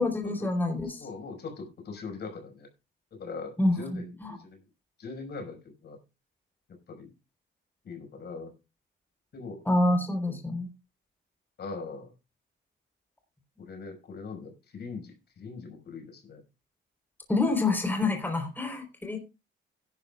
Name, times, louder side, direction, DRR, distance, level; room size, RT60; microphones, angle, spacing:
voice 1, 0.0-1.0 3.6-4.4 9.7-10.7 17.3-19.2, left 2 dB, 10° left, 3 dB, 3.8 m, -27 dB
voice 2, 0.8-2.7 3.1-4.6 5.0-6.0 6.7-7.1 7.8-8.5 9.3-9.6 9.9-10.0 11.6-12.1 13.6-16.4 17.4-17.5, left 4 dB, 55° left, 4 dB, 5.0 m, -41 dB
17.0 x 11.0 x 2.3 m, 0.27 s
cardioid pair, 90°, 20 cm